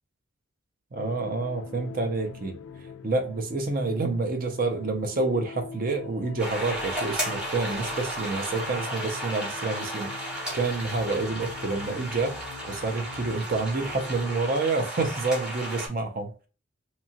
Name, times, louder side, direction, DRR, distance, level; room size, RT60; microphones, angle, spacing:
sound 1, 0.9-14.5, left 5 dB, 75° left, 0.3 m, -43 dB
voice 1, 0.9-2.6 3.0-16.3, right 3 dB, 45° right, 0.5 m, -28 dB
sound 2, 6.4-15.9, right 1 dB, 5° right, 0.7 m, -34 dB
2.8 x 2.3 x 2.7 m
head